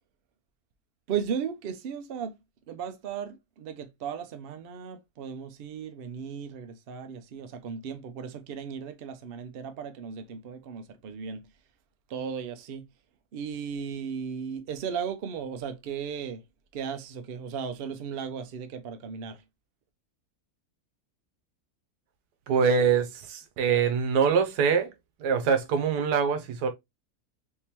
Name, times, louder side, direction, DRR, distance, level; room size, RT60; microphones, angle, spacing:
voice 1, 1.1-2.4 2.7-11.5 12.1-12.9 13.3-16.4 16.7-19.4, right 7 dB, 60° right, 0.6 m, -36 dB
voice 2, 22.5-24.9 25.2-26.7, right 6 dB, 90° right, 1.3 m, -24 dB
3.6 x 2.9 x 2.8 m
omnidirectional pair, 1.7 m